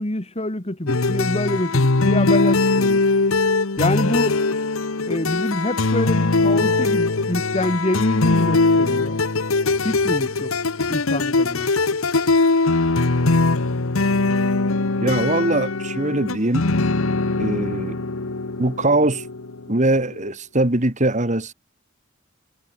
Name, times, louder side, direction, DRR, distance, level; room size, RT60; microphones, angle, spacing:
voice 1, 0.0-3.0 3.8-4.4 5.0-9.2 9.8-10.5 10.9-11.7, left 1 dB, 30° left, 1.9 m, -26 dB
sound 1, 0.9-20.2, left 3 dB, 80° left, 1.2 m, -21 dB
voice 2, 15.0-16.7 17.4-18.0 18.6-19.3 19.7-21.5, right 2 dB, 35° right, 2.2 m, -21 dB
head